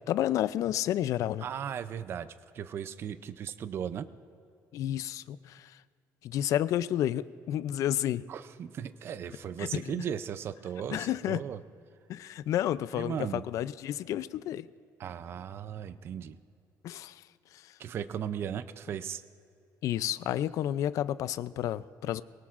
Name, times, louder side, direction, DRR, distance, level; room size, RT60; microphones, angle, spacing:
voice 1, 0.1-1.5 4.7-5.8 6.2-8.2 9.6-9.9 10.9-11.4 12.1-14.7 16.8-17.2 17.5-17.6 19.8-22.2, left 12 dB, 55° left, 16 dB, 0.4 m, -31 dB
voice 2, 1.4-4.1 8.3-11.6 12.9-13.4 15.0-16.4 17.8-19.2, right 8 dB, 40° right, 13 dB, 0.4 m, -37 dB
22.5 x 19.0 x 2.5 m, 2.5 s
cardioid pair, 175°, 7 cm